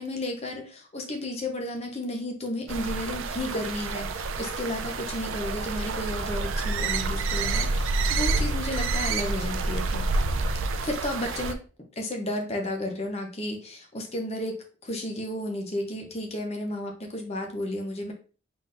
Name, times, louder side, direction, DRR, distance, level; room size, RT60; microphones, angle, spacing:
voice 1, 0.0-10.0 10.8-11.6 12.0-18.1, left 1 dB, 30° left, 2 dB, 0.8 m, -33 dB
sound 1, 2.7-11.5, right 3 dB, 75° right, 0.4 m, -28 dB
3.9 x 3.7 x 2.5 m, 0.37 s
head